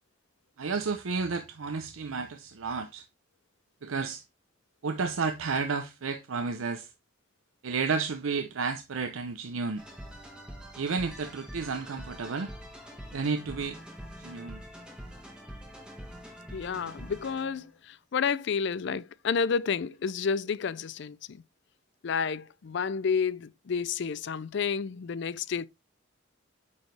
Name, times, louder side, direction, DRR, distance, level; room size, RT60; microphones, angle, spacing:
voice 1, 0.6-3.1 3.8-4.2 4.8-6.9 7.6-9.8 10.8-12.5 13.1-13.8 14.2-14.6, right 4 dB, 90° right, 0.7 m, -31 dB
sound 1, 9.8-17.7, equal, 5° right, 1.4 m, -45 dB
voice 2, 16.5-21.4 22.0-25.7, left 6 dB, 60° left, 0.4 m, -30 dB
8.5 x 4.2 x 3.3 m
head